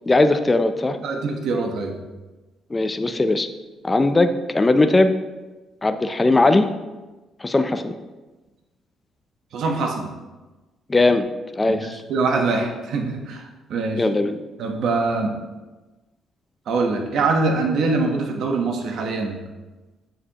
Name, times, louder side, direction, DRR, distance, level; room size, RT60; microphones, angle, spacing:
voice 1, 0.1-1.0 2.7-3.5 3.8-5.1 5.8-6.7 7.4-7.9 10.9-11.3 11.6-12.0 14.0-14.4, left 2 dB, 20° left, 8 dB, 0.4 m, -19 dB
voice 2, 1.0-2.0 9.5-10.1 11.7-11.8 12.1-14.1 14.6-15.3 16.7-19.4, right 3 dB, 70° right, 3 dB, 1.0 m, -23 dB
7.2 x 6.8 x 2.9 m, 1.2 s
cardioid pair, 105°, 0 cm